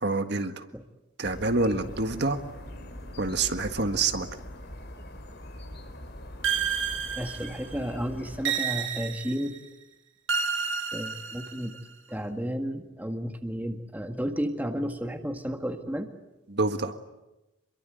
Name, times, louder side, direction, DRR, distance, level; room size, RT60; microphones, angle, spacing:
voice 1, 0.0-0.6 1.2-2.4 3.2-4.3 16.5-17.0, right 3 dB, 60° right, 7 dB, 1.7 m, -27 dB
sound 1, 1.2-8.5, left 1 dB, 55° left, 3.4 m, -42 dB
sound 2, 6.4-7.8 8.4-9.6 10.3-11.8, right 7 dB, 80° right, 2.8 m, -30 dB
voice 2, 7.2-9.5 10.9-11.7 12.1-16.1, equal, 10° right, 6 dB, 1.8 m, -32 dB
27.0 x 23.0 x 9.3 m, 0.98 s
head